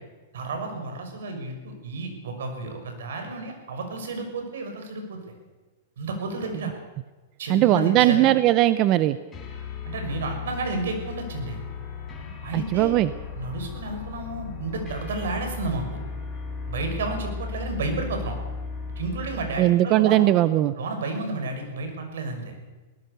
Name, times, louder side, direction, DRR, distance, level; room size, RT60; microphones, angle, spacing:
voice 1, 0.3-5.2 6.0-6.7 7.4-8.3 9.8-11.6 12.4-13.0 13.4-16.0 16.7-18.4 19.0-20.3 20.8-22.5, right 3 dB, 80° right, 5 dB, 6.2 m, -31 dB
voice 2, 7.5-9.2 12.5-13.1 19.6-20.7, right 14 dB, 35° right, 14 dB, 0.6 m, -19 dB
sound 1, 9.3-19.6, left 5 dB, 15° left, 4.9 m, -36 dB
22.0 x 18.0 x 6.9 m, 1.2 s
supercardioid pair, 155°, 0 cm